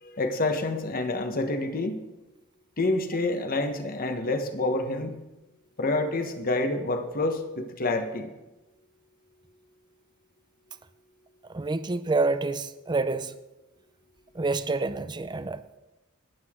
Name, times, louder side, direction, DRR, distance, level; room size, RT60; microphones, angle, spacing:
voice 1, 0.0-2.0 2.8-5.2 5.8-8.3, left 2 dB, 45° left, 7 dB, 1.2 m, -28 dB
voice 2, 11.5-13.3 14.3-15.8, right 3 dB, 20° right, 12 dB, 0.5 m, -28 dB
19.0 x 8.3 x 3.7 m, 1.0 s
head